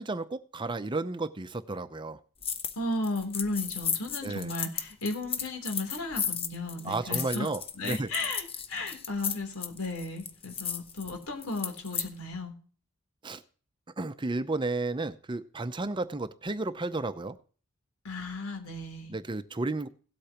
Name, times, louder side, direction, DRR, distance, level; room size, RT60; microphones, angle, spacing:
voice 1, 0.0-2.2 4.2-4.5 6.8-8.1 13.2-13.4 14.0-17.4 19.1-19.9, right 2 dB, 20° right, 0.6 m, -32 dB
sound 1, 2.4-2.8 3.0-12.1, left 7 dB, 25° left, 0.8 m, -34 dB
voice 2, 2.7-7.5 7.7-12.5 18.0-19.2, left 2 dB, 80° left, 3.4 m, -35 dB
17.5 x 8.3 x 2.9 m
head